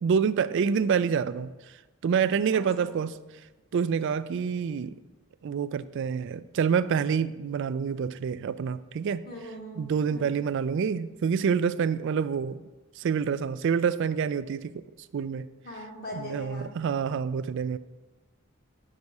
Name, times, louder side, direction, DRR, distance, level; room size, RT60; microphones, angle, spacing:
voice 1, 0.0-1.5 2.0-3.1 3.7-4.9 5.4-9.2 9.8-12.6 13.0-14.8 15.1-15.5 16.2-17.8, right 6 dB, 60° right, 15 dB, 0.3 m, -27 dB
voice 2, 2.5-2.9 9.3-10.3 15.6-16.8, left 1 dB, 45° left, -1 dB, 1.9 m, -41 dB
8.4 x 6.1 x 5.3 m, 1.2 s
head